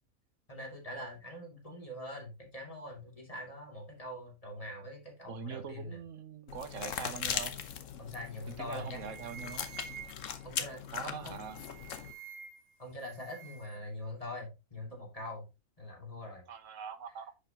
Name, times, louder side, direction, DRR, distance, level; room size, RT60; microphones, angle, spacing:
voice 1, 0.5-6.0 8.0-9.0 10.4-11.4 12.8-15.5 15.8-16.4, left 1 dB, 25° left, 2.7 m, -43 dB
voice 2, 5.2-7.5 8.6-9.7 10.9-11.6 16.5-17.3, right 7 dB, 70° right, 1.1 m, -43 dB
Bite into flesh, 6.5-12.1, left 8 dB, 65° left, 1.2 m, -39 dB
sound 1, 8.3-8.5 8.8-10.4 11.3-12.7 13.0-13.8, right 7 dB, 85° right, 1.5 m, -49 dB
10.5 x 5.5 x 2.9 m
omnidirectional pair, 1.4 m